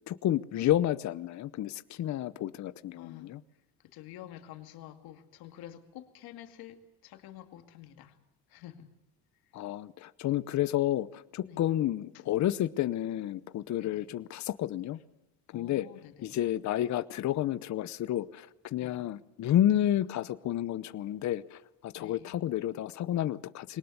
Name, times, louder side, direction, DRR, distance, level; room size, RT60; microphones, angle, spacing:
voice 1, 0.1-3.4 9.5-15.0 15.5-15.9 16.2-23.8, left 12 dB, 50° left, 0.8 m, -30 dB
voice 2, 3.0-3.3 3.8-8.2 8.5-8.9 11.4-11.7 12.1-12.3 13.8-14.1 15.5-16.4 18.8-19.1 22.0-22.4, left 12 dB, 75° left, 2.3 m, -49 dB
22.5 x 19.0 x 8.1 m
cardioid pair, 105°, 37 cm